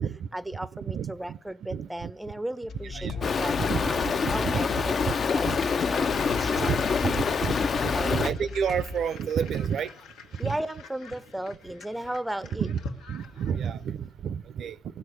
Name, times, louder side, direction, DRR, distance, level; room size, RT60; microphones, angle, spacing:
voice 1, 0.3-3.5 3.9-4.0 4.3-6.8 7.9-8.3 10.4-12.7, right 1 dB, 5° right, 0.5 m, -35 dB
voice 2, 0.9-1.4 1.7-2.1 2.8-4.8 5.1-5.6 6.6-9.9 10.4-10.6 12.6-12.8 13.1-15.0, right 8 dB, 65° right, 0.5 m, -31 dB
sound 1, 2.7-9.1, left 4 dB, 65° left, 1.0 m, -37 dB
Stream, 3.2-8.3, left 5 dB, 50° left, 0.5 m, -26 dB
sound 2, 4.7-14.0, left 4 dB, 85° left, 1.3 m, -44 dB
15.5 x 6.5 x 9.4 m
cardioid pair, 90°, 0 cm